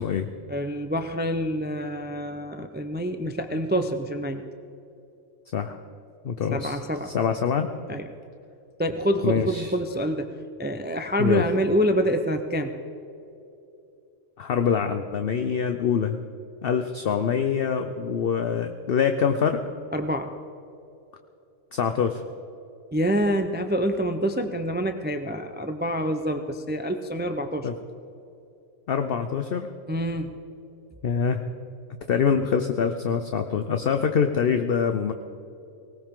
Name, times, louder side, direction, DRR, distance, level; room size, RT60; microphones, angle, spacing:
voice 1, 0.5-4.5 6.5-7.1 7.9-8.1 8.8-10.3 10.6-12.7 19.9-20.3 22.9-27.7 29.9-30.4, equal, 10° right, 7 dB, 0.5 m, -26 dB
voice 2, 6.2-6.8 7.0-7.7 9.2-9.7 11.2-11.5 14.4-16.2 16.6-19.6 21.7-22.2 27.6-27.7 28.9-29.7 31.0-31.4 32.1-35.1, left 7 dB, 55° left, 7 dB, 0.8 m, -24 dB
19.0 x 19.0 x 3.7 m, 2.8 s
omnidirectional pair, 1.3 m